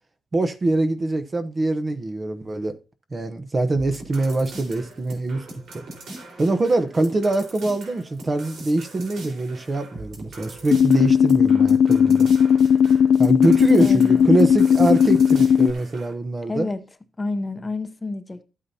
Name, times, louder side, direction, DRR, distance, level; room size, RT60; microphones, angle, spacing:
voice 1, 0.3-2.8 3.1-5.5 5.7-5.8 6.4-12.3 13.2-16.7, right 2 dB, 30° right, 0.9 m, -23 dB
sound 1, 3.7-16.1, right 2 dB, 90° right, 4.2 m, -41 dB
sound 2, 10.7-15.7, left 7 dB, 80° left, 0.4 m, -16 dB
voice 2, 13.5-14.4 16.5-16.8 17.2-18.4, left 2 dB, 20° left, 0.8 m, -30 dB
13.0 x 8.6 x 2.8 m
wide cardioid pair, 145°, 0 cm